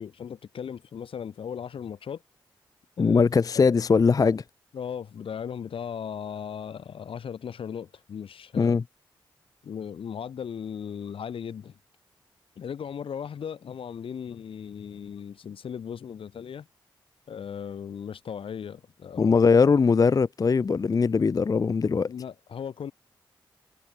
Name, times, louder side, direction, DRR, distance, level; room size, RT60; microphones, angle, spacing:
voice 1, 0.0-2.2 3.0-3.2 3.5-3.7 4.7-8.8 9.6-11.7 12.6-16.7 17.3-19.4 22.1-22.9, left 7 dB, 80° left, 1.5 m, -37 dB
voice 2, 3.0-4.4 8.6-8.8 19.2-22.1, left 5 dB, 40° left, 0.4 m, -21 dB
supercardioid pair, 40°, 9 cm